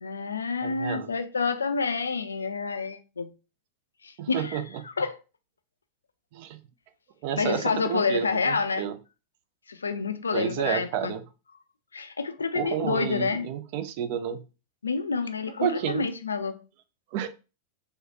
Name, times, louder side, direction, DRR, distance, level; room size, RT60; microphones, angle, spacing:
voice 1, 0.0-3.3 4.0-4.6 5.0-5.2 7.4-8.9 9.7-11.1 11.9-13.5 14.8-16.6, left 4 dB, 75° left, 0.3 m, -28 dB
voice 2, 0.6-1.1 4.2-4.7 6.3-6.6 7.2-8.9 10.3-11.2 12.5-14.4 15.6-16.1 17.1-17.3, right 9 dB, 45° right, 0.4 m, -30 dB
3.1 x 2.0 x 2.8 m
figure-of-eight pair, 90°, 0 cm